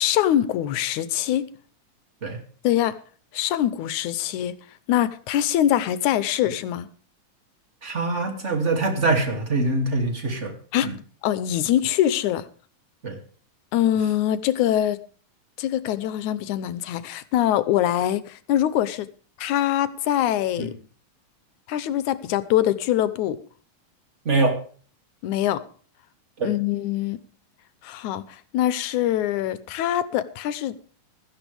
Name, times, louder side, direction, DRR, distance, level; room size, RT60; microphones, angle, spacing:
voice 1, 0.0-1.4 2.6-3.0 3.3-4.5 4.9-6.9 10.7-10.9 11.2-12.4 13.7-15.0 15.6-19.1 19.4-20.7 21.7-23.4 25.2-25.6 26.4-27.2 27.8-28.3 28.5-30.7, left 12 dB, 80° left, 2.2 m, -23 dB
voice 2, 7.8-10.5 10.8-10.9 13.0-13.2 20.6-20.7 24.2-24.6 26.4-26.5, right 3 dB, 25° right, 2.6 m, -24 dB
16.5 x 14.0 x 3.5 m
omnidirectional pair, 3.5 m